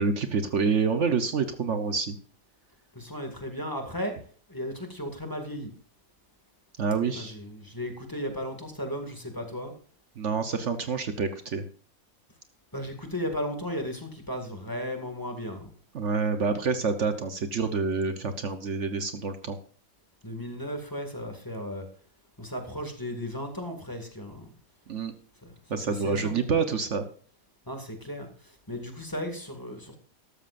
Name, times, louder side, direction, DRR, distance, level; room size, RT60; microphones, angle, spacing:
voice 1, 0.0-2.2 6.8-7.4 10.2-11.6 15.9-19.6 24.9-25.1 25.7-27.0, right 5 dB, 60° right, 9 dB, 1.2 m, -27 dB
voice 2, 3.0-4.2 4.5-5.7 7.1-9.7 12.7-15.7 20.2-21.9 22.4-24.5 25.4-25.5 26.0-26.4 27.7-28.3 28.7-30.0, equal, 15° left, 4 dB, 2.0 m, -35 dB
13.5 x 13.0 x 2.5 m, 0.43 s
omnidirectional pair, 1.5 m